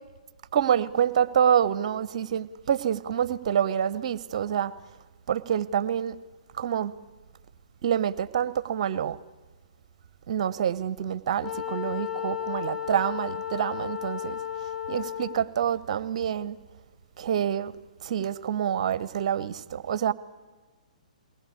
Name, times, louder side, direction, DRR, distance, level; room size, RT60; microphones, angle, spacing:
voice 1, 0.5-4.7 5.3-6.2 6.6-6.9 7.8-9.2 10.3-14.4 14.9-16.6 17.2-17.7 18.0-20.1, right 9 dB, 50° right, 0.9 m, -27 dB
Wind instrument woodwind instrument, 11.4-15.6, left 10 dB, 50° left, 1.4 m, -34 dB
21.5 x 18.5 x 8.4 m
figure-of-eight pair, 125°, 4 cm